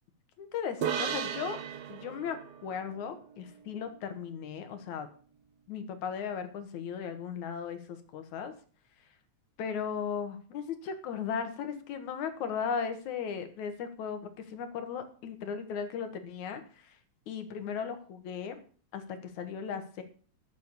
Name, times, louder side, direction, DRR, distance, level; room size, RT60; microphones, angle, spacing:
voice 1, 0.4-1.6 1.9-5.1 5.7-8.5 9.6-16.9 17.3-18.6 18.9-20.0, left 7 dB, 90° left, 8 dB, 2.9 m, -37 dB
sound 1, 0.8-4.3, right 8 dB, 75° right, 1.0 m, -37 dB
12.5 x 7.2 x 6.7 m, 0.41 s
omnidirectional pair, 3.3 m